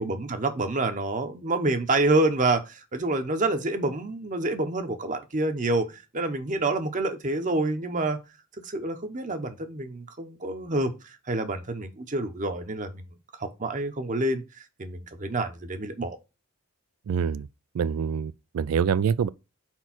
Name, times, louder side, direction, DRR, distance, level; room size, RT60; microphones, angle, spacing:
voice 1, 0.0-8.2 8.6-13.0 13.4-16.2, right 2 dB, 35° right, 0.8 m, -28 dB
voice 2, 17.1-17.5 17.7-19.3, right 7 dB, 80° right, 0.4 m, -25 dB
4.5 x 4.5 x 5.9 m
head